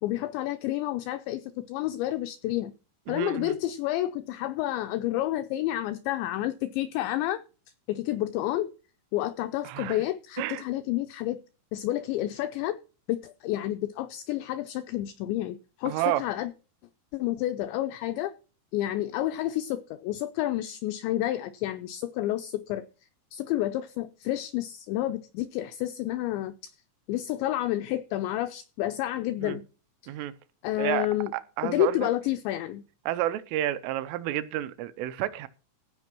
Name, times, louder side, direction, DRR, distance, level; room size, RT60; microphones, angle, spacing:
voice 1, 0.0-2.7 3.1-7.4 7.9-8.7 9.1-11.4 11.7-12.8 13.1-16.5 17.1-18.3 18.7-22.9 23.3-26.7 27.1-29.6 30.6-31.3 31.6-32.8, left 14 dB, 85° left, 2.5 m, -30 dB
voice 2, 3.1-3.6 9.6-10.0 10.4-10.6 15.9-16.2 29.4-29.6 30.1-30.3 30.8-31.1 31.3-32.0 33.1-35.5, right 14 dB, 80° right, 3.1 m, -30 dB
15.5 x 5.2 x 6.0 m
omnidirectional pair, 5.8 m